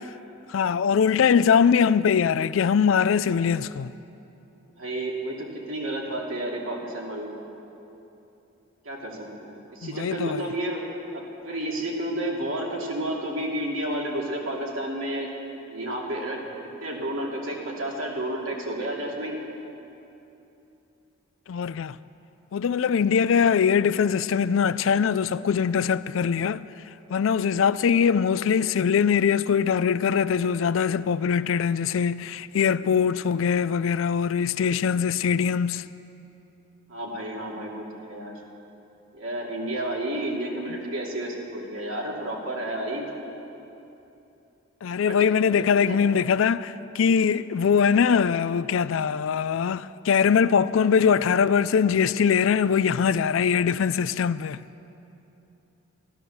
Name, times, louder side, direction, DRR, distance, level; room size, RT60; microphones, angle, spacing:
voice 1, 0.5-3.9 9.8-10.4 21.5-22.0 22.5-26.7 27.1-35.9 44.8-54.6, left 6 dB, 70° left, 0.4 m, -22 dB
voice 2, 4.8-7.3 8.8-10.8 11.1-15.3 15.7-16.5 16.8-19.4 36.9-38.3 39.1-43.1 45.1-45.3 45.8-46.0, right 1 dB, 75° right, 2.6 m, -31 dB
13.5 x 13.0 x 7.0 m
head